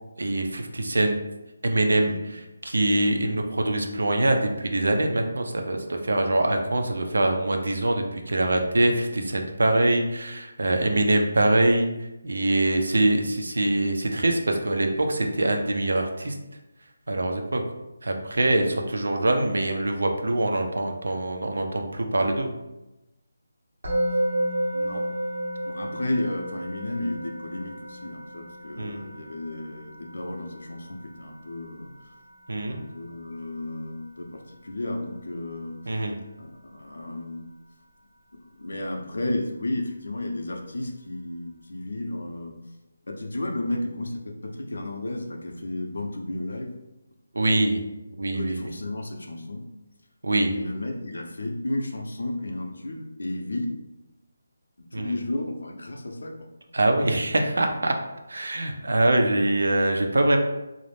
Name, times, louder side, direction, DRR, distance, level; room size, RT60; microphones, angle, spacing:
voice 1, 0.2-1.2 1.6-2.1 2.6-11.9 12.2-16.3 17.1-17.6 18.0-22.5 28.8-29.1 32.5-32.8 35.9-36.2 47.3-47.8 48.2-48.6 50.2-50.5 54.9-55.1 56.7-57.9 58.3-60.4, right 1 dB, 75° right, 4 dB, 0.4 m, -24 dB
Musical instrument, 23.8-34.9, right 1 dB, 50° right, 1.0 m, -33 dB
voice 2, 24.7-25.0 25.6-32.1 32.7-36.0 36.4-37.5 38.4-42.6 43.1-46.8 48.3-49.6 50.5-53.8 54.8-56.4, left 1 dB, 75° left, 2 dB, 0.5 m, -33 dB
2.4 x 2.0 x 3.2 m, 0.97 s
hypercardioid pair, 180°, 0 cm